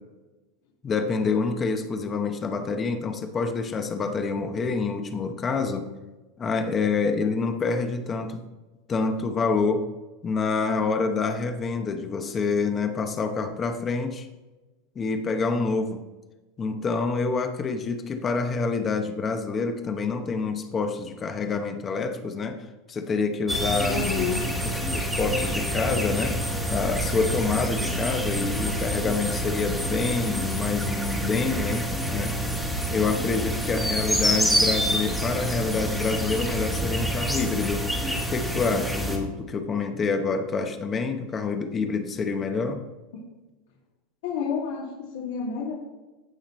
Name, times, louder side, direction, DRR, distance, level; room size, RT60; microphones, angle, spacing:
voice 1, 0.8-5.9 6.4-8.4 8.9-9.9 10.2-14.3 14.9-16.0 16.6-24.0 24.6-26.4 26.7-37.9 38.3-42.8, left 4 dB, 20° left, 7 dB, 0.9 m, -27 dB
sound 1, 23.5-39.2, equal, ahead, 1.3 m, -27 dB
voice 2, 23.9-24.4 44.2-44.8 45.1-45.7, left 7 dB, 75° left, -6 dB, 2.4 m, -28 dB
15.5 x 5.8 x 3.1 m, 1.1 s
supercardioid pair, 165°, 0 cm